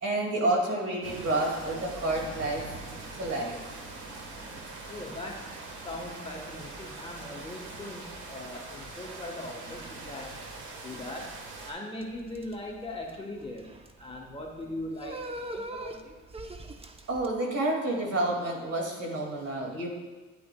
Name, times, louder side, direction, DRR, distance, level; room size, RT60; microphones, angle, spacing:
voice 1, 0.0-2.6 3.2-3.6 17.1-19.9, right 2 dB, 50° right, -1 dB, 2.2 m, -29 dB
sound 1, 1.0-11.7, right 3 dB, 75° right, 1.4 m, -42 dB
voice 2, 4.9-5.4 5.8-10.3 10.8-11.3 11.6-13.7 14.0-16.1, left 1 dB, 20° left, 0 dB, 1.1 m, -40 dB
sound 2, 12.0-17.3, right 2 dB, 20° right, 0.6 m, -42 dB
9.4 x 8.4 x 2.2 m, 1.2 s
cardioid pair, 90°, 30 cm